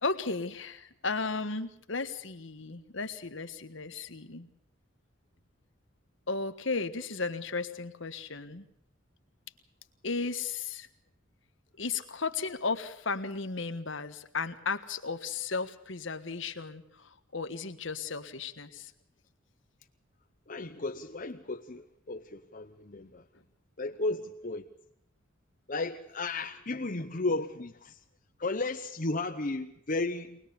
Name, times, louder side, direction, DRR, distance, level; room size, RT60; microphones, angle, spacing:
voice 1, 0.0-4.5 6.3-8.7 10.0-10.9 11.8-18.9, left 4 dB, 65° left, 9 dB, 1.5 m, -35 dB
voice 2, 20.5-23.2 23.8-24.7 25.7-28.0 28.4-30.4, left 2 dB, 40° left, 5 dB, 0.9 m, -34 dB
23.5 x 20.5 x 7.0 m, 0.73 s
head